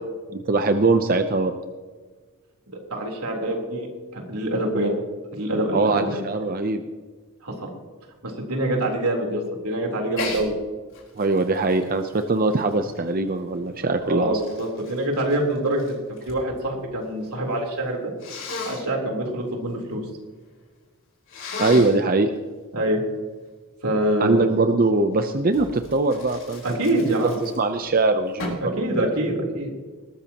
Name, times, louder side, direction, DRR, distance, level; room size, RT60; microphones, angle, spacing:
voice 1, 0.3-1.6 5.7-6.8 11.1-14.4 21.6-22.3 24.2-26.8 27.4-29.1, right 3 dB, 40° right, 8 dB, 0.7 m, -22 dB
voice 2, 2.7-3.9 4.1-4.9 5.3-6.2 7.4-7.7 8.2-10.5 14.0-16.0 16.3-18.1 18.7-20.0 22.7-23.0 23.8-24.4 26.6-27.4 28.6-29.7, right 1 dB, 85° right, 0 dB, 3.7 m, -25 dB
Sneeze, 10.1-10.5 10.9-13.3 14.0-16.4 16.7-17.3 18.2-18.8 21.3-22.0 25.5-27.8 28.4-28.7, left 2 dB, 60° left, 4.4 m, -34 dB
20.0 x 13.5 x 3.0 m, 1.4 s
head